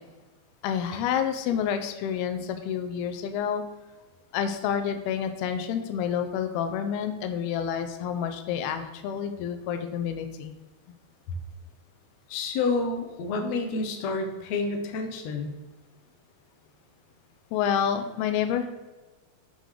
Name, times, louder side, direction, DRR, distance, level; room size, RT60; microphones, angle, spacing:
voice 1, 0.6-3.6 4.3-10.5 17.5-18.7, left 8 dB, 85° left, 7 dB, 2.6 m, -29 dB
voice 2, 12.3-15.5, left 3 dB, 65° left, 4 dB, 1.7 m, -29 dB
8.3 x 6.5 x 3.8 m, 1.2 s
omnidirectional pair, 4.5 m